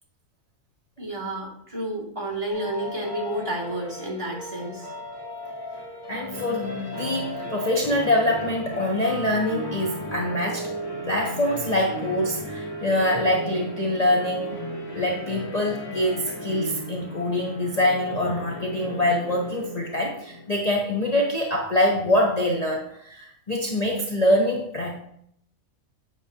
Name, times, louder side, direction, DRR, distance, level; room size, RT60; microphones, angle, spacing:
voice 1, 1.0-4.9, right 1 dB, 25° right, -6 dB, 2.3 m, -31 dB
sound 1, 2.5-20.6, equal, 50° left, 2.4 m, -35 dB
voice 2, 6.1-10.7 11.0-14.6 14.9-25.0, left 1 dB, 35° left, -2 dB, 1.0 m, -24 dB
8.2 x 6.7 x 2.8 m, 0.70 s
omnidirectional pair, 1.4 m